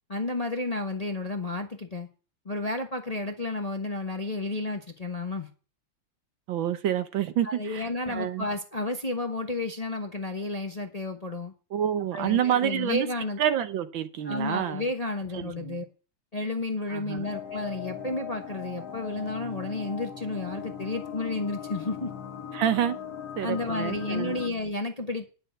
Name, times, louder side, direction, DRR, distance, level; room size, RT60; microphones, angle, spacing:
voice 1, 0.1-2.1 2.4-5.5 7.4-11.5 12.1-13.4 14.2-15.8 16.3-22.1 23.4-25.3, left 2 dB, 25° left, 5 dB, 1.0 m, -32 dB
voice 2, 6.5-8.5 11.7-13.1 13.4-14.8 15.3-15.8 16.9-17.3 22.5-23.0 23.4-24.4, right 10 dB, 75° right, 11 dB, 1.7 m, -28 dB
sound 1, 17.2-24.5, left 8 dB, 50° left, 1.8 m, -39 dB
11.0 x 6.6 x 8.0 m, 0.36 s
omnidirectional pair, 2.2 m